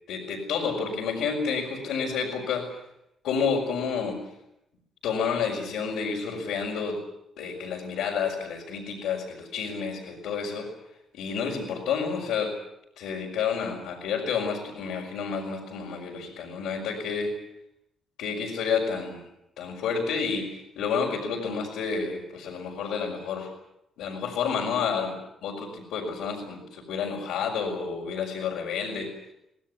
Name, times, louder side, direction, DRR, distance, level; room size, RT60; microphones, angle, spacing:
voice 1, 0.1-2.7 3.2-4.2 5.0-7.0 7.4-10.7 11.1-12.5 13.0-17.3 18.2-19.3 19.6-23.5 24.0-25.2 25.4-29.1, left 6 dB, 85° left, -4 dB, 5.5 m, -30 dB
25.0 x 17.5 x 9.9 m, 0.83 s
cardioid pair, 90°, 0 cm